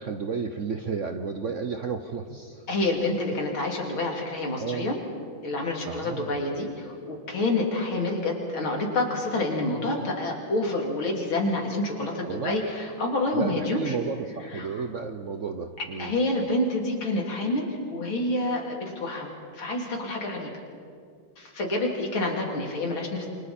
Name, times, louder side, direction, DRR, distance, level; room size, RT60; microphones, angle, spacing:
voice 1, 0.0-2.7 3.1-3.2 3.5-3.6 4.6-4.9 5.8-6.4 12.3-12.6 13.3-16.1, right 5 dB, 55° right, 7 dB, 0.9 m, -32 dB
voice 2, 2.7-5.0 5.4-14.0 14.5-14.7 16.0-20.5 21.4-23.3, left 2 dB, 80° left, 0 dB, 3.9 m, -28 dB
28.0 x 25.5 x 4.4 m, 2.3 s
omnidirectional pair, 2.2 m